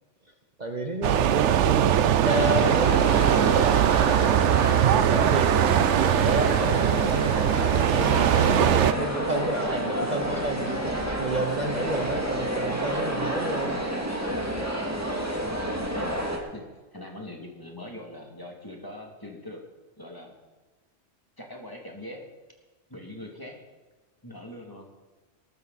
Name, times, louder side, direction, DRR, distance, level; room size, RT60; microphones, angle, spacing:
voice 1, 0.6-4.3 4.8-10.8 11.2-13.8, right 2 dB, 40° right, 3 dB, 1.2 m, -31 dB
sound 1, 1.0-8.9, right 11 dB, 80° right, 0.9 m, -21 dB
sound 2, 2.2-16.4, equal, 15° right, 2.2 m, -29 dB
voice 2, 15.7-16.6 16.9-19.6 20.0-20.3 21.4-22.2 22.9-23.6 24.2-24.9, left 1 dB, 15° left, 0 dB, 2.7 m, -41 dB
19.5 x 13.0 x 4.2 m, 1.2 s
omnidirectional pair, 1.2 m